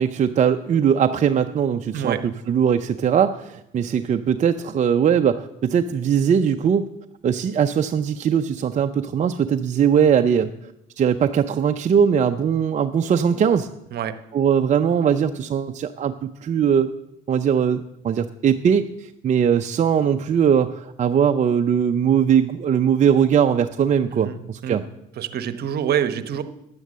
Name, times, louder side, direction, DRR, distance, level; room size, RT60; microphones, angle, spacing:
voice 1, 0.0-2.2 2.5-6.9 7.2-10.5 11.0-13.7 14.3-16.9 17.3-24.8, right 8 dB, 40° right, 7 dB, 0.6 m, -20 dB
voice 2, 24.1-24.8 25.2-26.4, right 9 dB, 55° right, 11 dB, 1.0 m, -26 dB
10.5 x 8.0 x 7.4 m, 0.83 s
supercardioid pair, 85°, 19 cm